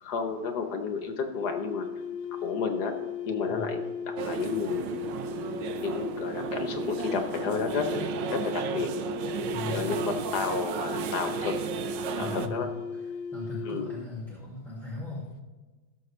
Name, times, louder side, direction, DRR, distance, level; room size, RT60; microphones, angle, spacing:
voice 1, 0.0-1.9 2.4-2.9 3.2-4.9 5.8-8.9 9.7-11.5 12.2-12.7 13.6-13.9, left 5 dB, 60° left, 6 dB, 1.3 m, -31 dB
sound 1, 1.3-14.1, left 7 dB, 90° left, 1.5 m, -37 dB
sound 2, 4.2-12.5, right 9 dB, 70° right, 1.2 m, -34 dB
voice 2, 9.4-9.9 12.2-12.7 13.3-15.2, left 2 dB, ahead, -5 dB, 1.9 m, -38 dB
17.5 x 6.7 x 3.2 m, 1.2 s
omnidirectional pair, 2.3 m